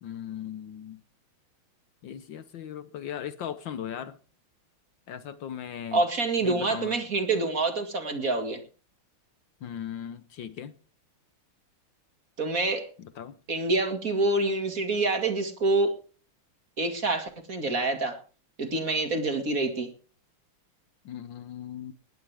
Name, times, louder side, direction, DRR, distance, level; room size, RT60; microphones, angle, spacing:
voice 1, 0.0-1.0 2.0-4.2 5.1-6.1 6.4-7.0 9.6-10.7 13.0-13.4 21.0-21.9, left 9 dB, 65° left, 1.5 m, -38 dB
voice 2, 5.9-8.6 12.4-12.9 13.5-15.9 16.8-18.2 18.6-19.9, right 2 dB, 40° right, 2.5 m, -26 dB
19.0 x 15.5 x 3.5 m
omnidirectional pair, 2.4 m